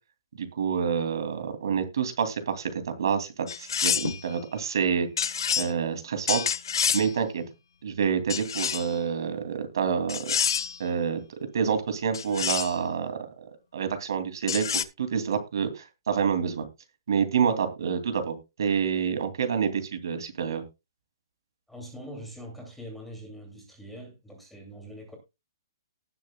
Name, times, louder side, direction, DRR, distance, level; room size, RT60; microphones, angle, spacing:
voice 1, 0.4-5.1 5.6-6.4 6.9-7.4 7.8-11.2 11.5-13.3 13.7-16.7 17.1-20.6, right 6 dB, 60° right, 2.7 m, -28 dB
sound 1, 3.5-4.2 5.2-5.7 6.3-7.1 8.3-9.0 10.1-10.8 12.1-12.8 14.5-14.8, left 7 dB, 65° left, 1.0 m, -27 dB
voice 2, 21.7-25.2, equal, ahead, 2.6 m, -43 dB
18.5 x 7.3 x 2.3 m
hypercardioid pair, 175°, 2 cm